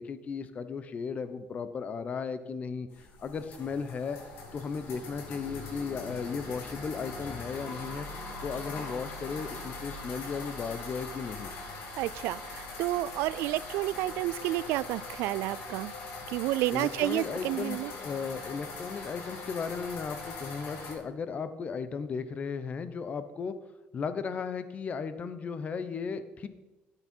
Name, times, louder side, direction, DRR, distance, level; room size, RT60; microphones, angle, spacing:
voice 1, 0.0-2.9 3.2-4.2 4.5-8.1 8.4-11.5 16.7-23.6 23.9-26.5, left 5 dB, 35° left, 0.9 m, -35 dB
sound 1, 2.9-20.9, left 3 dB, 70° left, 2.8 m, -42 dB
voice 2, 12.0-15.9 16.3-17.9, right 16 dB, 80° right, 0.3 m, -30 dB
12.0 x 8.8 x 4.5 m
cardioid pair, 125°, 4 cm